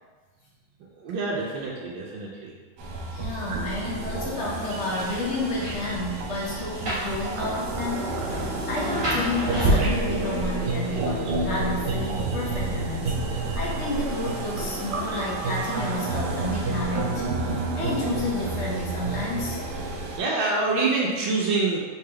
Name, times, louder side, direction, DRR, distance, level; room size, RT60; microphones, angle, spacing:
voice 1, 1.0-2.5 6.4-6.5 20.2-21.8, right 3 dB, 90° right, -4 dB, 1.4 m, -26 dB
sound 1, 2.8-20.2, right 2 dB, 70° right, 1.1 m, -30 dB
voice 2, 3.1-8.1 8.7-19.6, left 2 dB, 60° left, -4 dB, 0.7 m, -31 dB
Rain, 4.4-13.5, right 1 dB, 45° right, 1.6 m, -31 dB
3.9 x 3.3 x 3.3 m, 1.4 s
omnidirectional pair, 2.0 m